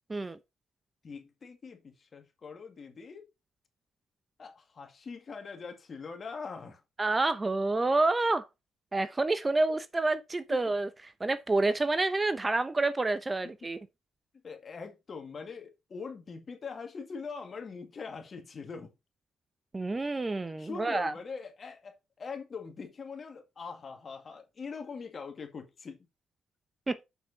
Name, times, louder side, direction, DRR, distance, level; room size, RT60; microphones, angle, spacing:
voice 1, 1.0-3.3 4.4-6.8 9.7-9.8 13.6-13.7 14.4-18.9 20.6-26.0, left 5 dB, 40° left, 2.1 m, -42 dB
voice 2, 7.0-8.5 8.9-10.9 11.2-13.8 19.7-21.1 26.9-27.1, right 2 dB, 20° right, 0.7 m, -28 dB
7.1 x 5.7 x 4.1 m
cardioid pair, 90°, 0 cm